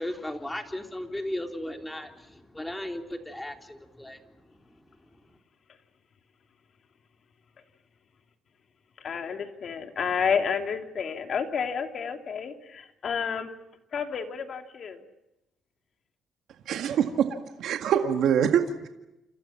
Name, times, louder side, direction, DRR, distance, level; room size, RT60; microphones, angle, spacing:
voice 1, 0.0-4.2, left 1 dB, 10° left, 4 dB, 3.4 m, -36 dB
voice 2, 9.0-13.5 13.9-15.0, left 6 dB, 55° left, 5 dB, 3.1 m, -30 dB
voice 3, 16.7-17.3 17.6-18.9, right 8 dB, 75° right, 5 dB, 2.0 m, -24 dB
29.0 x 28.0 x 5.9 m, 0.90 s
cardioid pair, 90°, 0 cm